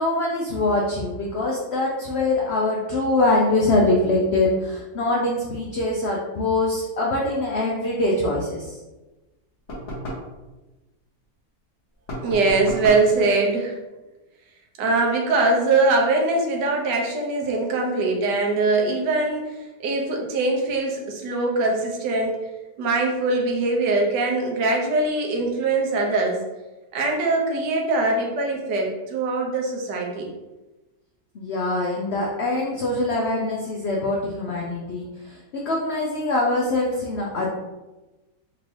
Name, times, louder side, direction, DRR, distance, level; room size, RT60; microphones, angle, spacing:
voice 1, 0.0-8.8 31.3-37.5, left 2 dB, 90° left, -3 dB, 0.5 m, -23 dB
sound 1, 9.7-10.3 12.1-13.1, equal, 50° left, 1.2 m, -32 dB
voice 2, 12.2-13.8 14.8-22.4 22.8-26.4 26.9-30.3, right 3 dB, 80° right, 0 dB, 1.4 m, -22 dB
4.3 x 2.6 x 3.1 m, 1.1 s
omnidirectional pair, 1.8 m